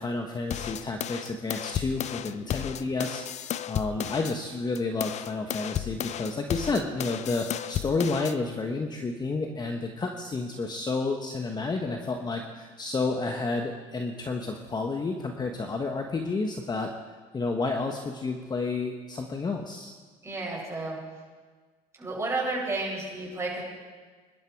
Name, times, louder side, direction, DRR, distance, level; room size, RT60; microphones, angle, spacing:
voice 1, 0.0-3.2 3.7-16.9 17.3-19.9, left 3 dB, 25° left, 3 dB, 1.4 m, -30 dB
sound 1, 0.5-4.4 4.8-8.4, left 11 dB, 40° left, 0.6 m, -33 dB
voice 2, 20.2-21.0 22.0-23.6, right 2 dB, 15° right, -4 dB, 7.1 m, -31 dB
24.5 x 12.0 x 4.8 m, 1.4 s
supercardioid pair, 105°, 18 cm